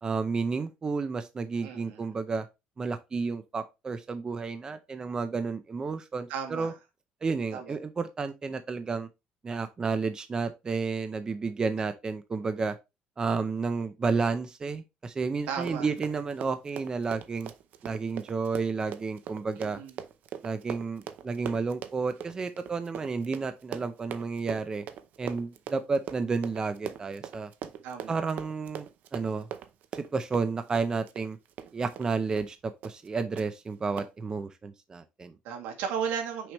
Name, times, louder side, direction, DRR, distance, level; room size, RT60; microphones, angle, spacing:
voice 1, 0.0-2.5 2.8-6.7 7.2-9.1 9.4-12.8 13.2-17.5 17.8-19.8 20.4-24.8 25.2-27.5 28.1-28.9 29.1-29.5 29.9-31.4 31.7-35.3, right 4 dB, 25° right, 0.6 m, -31 dB
voice 2, 1.6-2.0 6.3-6.7 7.5-7.8 15.5-15.9 19.6-19.9 27.8-28.2 35.4-36.5, right 7 dB, 90° right, 1.8 m, -35 dB
Run, 15.5-32.1 32.4-32.5 32.8-33.1 33.4-33.5 34.0-34.1, right 9 dB, 60° right, 0.7 m, -41 dB
6.1 x 5.0 x 3.1 m
cardioid pair, 130°, 3 cm